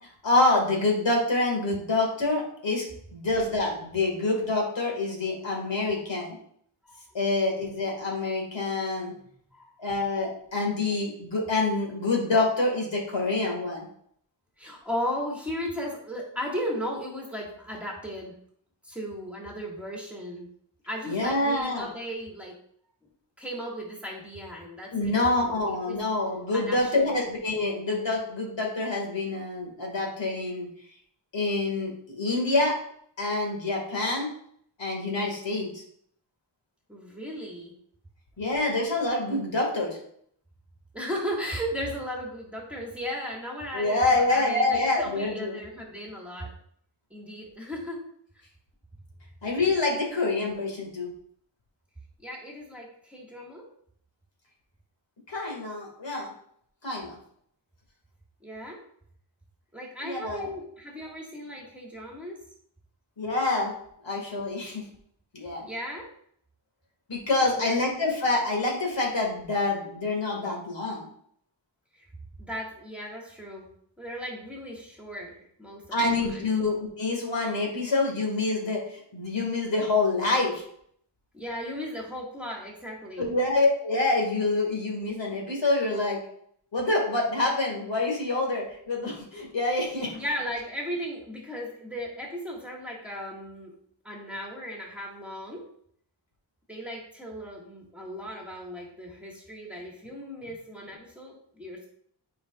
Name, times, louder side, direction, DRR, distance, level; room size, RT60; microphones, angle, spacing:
voice 1, 0.0-2.8 3.1-6.4 7.1-9.1 9.8-13.9 21.1-21.9 24.9-30.7 31.3-32.8 33.2-34.3 34.8-35.8 38.4-40.0 43.7-45.6 49.4-51.1 55.3-56.3 56.8-57.2 60.0-60.5 63.2-63.7 64.0-64.8 65.3-65.7 67.1-71.0 75.9-80.6 83.2-86.2 86.7-90.2, left 2 dB, 75° left, 0 dB, 2.1 m, -26 dB
voice 2, 6.9-7.2 9.1-9.2 9.5-9.7 14.6-18.3 18.8-20.5 20.9-22.5 23.4-26.0 26.5-27.1 36.9-37.7 40.9-46.5 47.1-48.0 52.2-53.7 58.4-58.8 59.7-62.4 65.6-66.1 67.4-67.8 71.9-72.1 72.4-73.7 74.0-75.8 76.2-76.4 81.3-83.3 90.1-93.7 94.0-95.6 96.7-101.9, equal, 5° right, -3 dB, 1.7 m, -36 dB
9.1 x 4.9 x 2.4 m, 0.65 s
wide cardioid pair, 100°, 44 cm